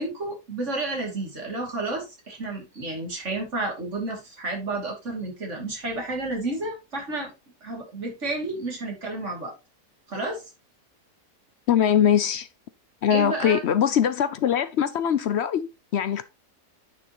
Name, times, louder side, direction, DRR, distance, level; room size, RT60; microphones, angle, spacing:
voice 1, 0.0-7.3 7.6-9.5 10.1-10.4 13.1-13.6, right 2 dB, 45° right, 3.0 m, -31 dB
voice 2, 11.7-12.5 13.0-16.2, left 9 dB, 70° left, 0.6 m, -22 dB
9.9 x 6.1 x 3.0 m
omnidirectional pair, 1.7 m